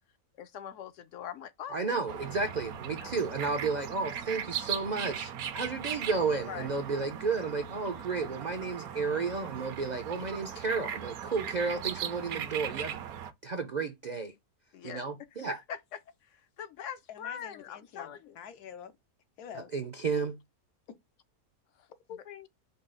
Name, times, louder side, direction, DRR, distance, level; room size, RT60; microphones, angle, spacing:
voice 1, 0.3-2.4 3.0-3.1 6.4-6.7 14.7-15.0 15.5-18.4 21.7-21.9, left 9 dB, 70° left, 0.8 m, -43 dB
voice 2, 1.7-13.1 13.4-14.3 14.8-15.6 19.5-20.4, right 4 dB, 60° right, 0.4 m, -32 dB
sound 1, 2.1-13.3, right 9 dB, 75° right, 1.1 m, -39 dB
voice 3, 17.1-18.9 19.4-19.7 22.1-22.5, left 8 dB, 85° left, 1.3 m, -46 dB
5.4 x 2.3 x 3.8 m
omnidirectional pair, 1.6 m